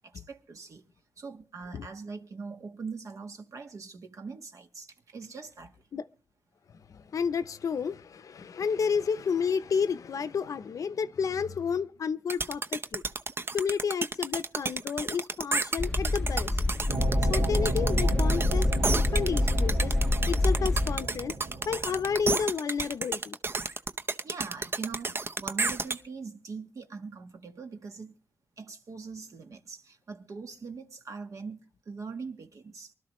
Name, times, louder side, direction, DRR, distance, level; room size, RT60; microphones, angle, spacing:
voice 1, 0.1-0.8 1.2-4.9 5.1-5.7 24.2-28.1 28.6-31.6 31.9-32.9, right 4 dB, 55° right, 1.5 m, -42 dB
voice 2, 6.9-13.0 13.5-16.5 17.3-19.9 20.3-21.4 21.7-23.4, left 6 dB, 60° left, 0.7 m, -31 dB
sound 1, 12.3-26.0, right 3 dB, 40° right, 0.8 m, -31 dB
sound 2, 15.8-21.0, left 2 dB, 15° left, 0.6 m, -26 dB
sound 3, 16.9-22.5, right 2 dB, 75° right, 2.8 m, -34 dB
24.0 x 12.5 x 3.1 m
wide cardioid pair, 120°, 6 cm